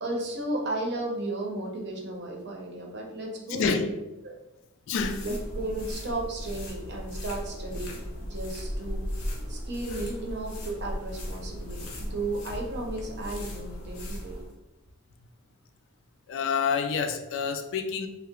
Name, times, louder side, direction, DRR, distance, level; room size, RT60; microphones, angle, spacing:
voice 1, 0.0-3.9 4.2-4.4 5.2-9.0 9.5-14.4, right 2 dB, 50° right, 0 dB, 0.7 m, -34 dB
voice 2, 3.5-4.0 4.9-5.2 16.3-18.1, left 5 dB, 60° left, 6 dB, 0.3 m, -28 dB
sound 1, 5.0-14.5, equal, 75° left, 0.8 m, -36 dB
2.8 x 2.1 x 3.5 m, 0.98 s
head